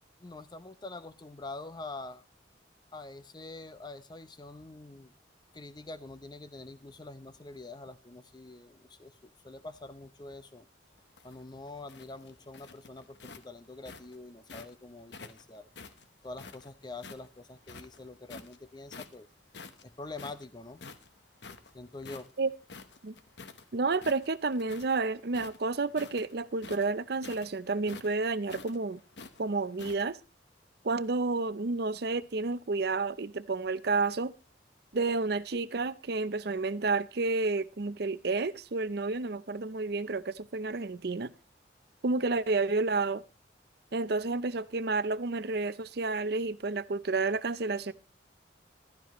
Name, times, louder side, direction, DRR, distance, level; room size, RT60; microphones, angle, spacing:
voice 1, 0.2-2.2 2.9-5.1 5.5-10.7 11.2-15.7 16.2-19.3 19.8-20.8 21.7-22.3, left 2 dB, 25° left, 0.6 m, -45 dB
sound 1, 11.0-14.8 15.1-17.3 17.6-18.6 18.9-19.3 19.5-23.6 23.9-25.0 25.3-30.0, left 4 dB, 70° left, 1.1 m, -48 dB
voice 2, 23.7-29.0 29.4-30.2 30.8-34.3 34.9-41.3 42.0-43.2 43.9-47.9, right 3 dB, 60° right, 0.6 m, -30 dB
15.0 x 12.5 x 3.1 m
head